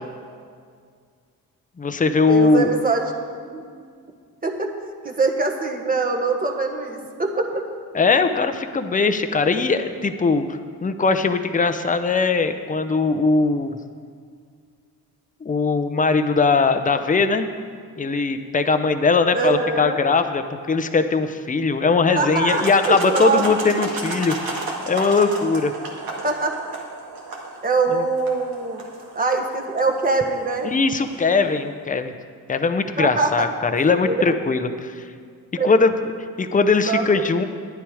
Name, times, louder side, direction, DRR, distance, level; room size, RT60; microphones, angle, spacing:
voice 1, 1.8-2.7 7.9-13.8 15.4-17.5 18.0-25.7 27.9-28.0 30.6-32.1 32.5-35.0 35.6-35.9 36.4-37.4, left 4 dB, 20° left, 8 dB, 0.7 m, -20 dB
voice 2, 2.3-3.1 3.4-3.6 4.4-4.7 5.0-7.6 19.3-20.0 22.2-23.4 23.9-24.0 26.2-26.5 27.6-28.8 29.1-30.7 33.0-33.5 34.0-34.1 35.6-35.7 36.9-37.0, right 3 dB, 25° right, 2 dB, 1.4 m, -23 dB
sound 1, 22.3-31.3, right 3 dB, 70° right, 1.9 m, -34 dB
10.5 x 10.0 x 4.9 m, 2.1 s
cardioid pair, 80°, 37 cm